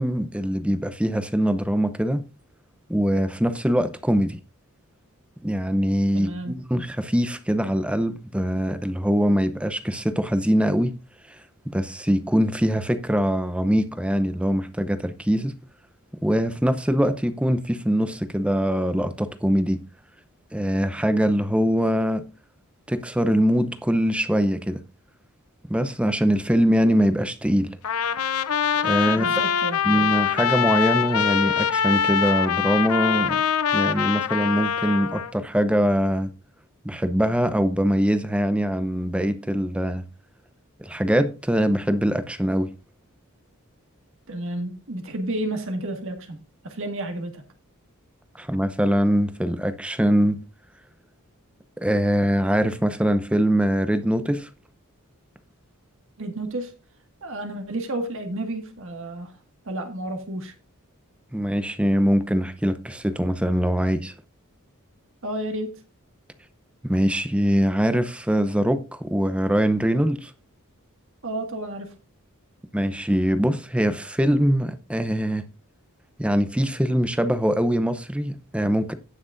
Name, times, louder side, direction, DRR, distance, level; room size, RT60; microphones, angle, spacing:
voice 1, 0.0-2.3 2.9-4.4 5.4-11.0 11.7-15.6 16.2-19.8 20.5-22.3 22.9-24.8 25.7-27.8 28.8-29.3 29.8-33.4 33.7-36.3 36.8-40.0 40.8-42.7 48.4-50.4 51.8-54.5 61.3-64.1 66.8-70.3 72.7-75.5 76.2-78.9, equal, 5° right, 0.7 m, -23 dB
voice 2, 6.1-6.6 29.1-29.8 44.3-47.4 56.2-56.7 57.2-59.3 59.7-60.5 65.2-65.8 71.2-71.9, right 1 dB, 65° right, 1.8 m, -31 dB
Trumpet, 27.8-35.3, left 8 dB, 80° left, 0.6 m, -23 dB
17.5 x 6.1 x 2.5 m
head